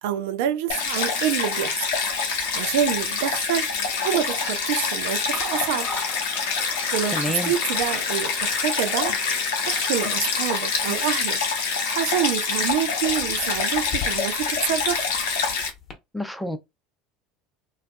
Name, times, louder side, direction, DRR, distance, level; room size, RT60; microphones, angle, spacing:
voice 1, 0.0-1.8 2.2-5.9 6.6-9.2 9.6-15.1, right 10 dB, 70° right, 0.3 m, -27 dB
Stream, 0.7-15.7, left 5 dB, 75° left, 0.6 m, -26 dB
sound 1, 2.1-2.9 3.2-3.8 5.2-15.9, left 4 dB, 35° left, 0.8 m, -39 dB
voice 2, 7.1-7.5 16.1-16.6, left 1 dB, 5° left, 0.5 m, -28 dB
2.3 x 2.2 x 2.5 m
hypercardioid pair, 80°, 0 cm